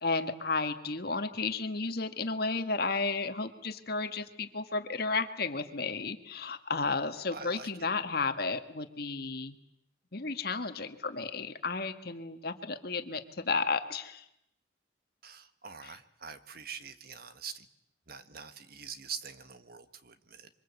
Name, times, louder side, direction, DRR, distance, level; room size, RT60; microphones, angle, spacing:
voice 1, 0.0-9.5 10.1-14.2 15.8-16.0, left 4 dB, 55° left, 8 dB, 1.7 m, -33 dB
voice 2, 7.3-7.7 15.2-17.7 18.1-20.5, right 6 dB, 55° right, 11 dB, 1.5 m, -44 dB
26.0 x 24.5 x 8.3 m, 0.79 s
head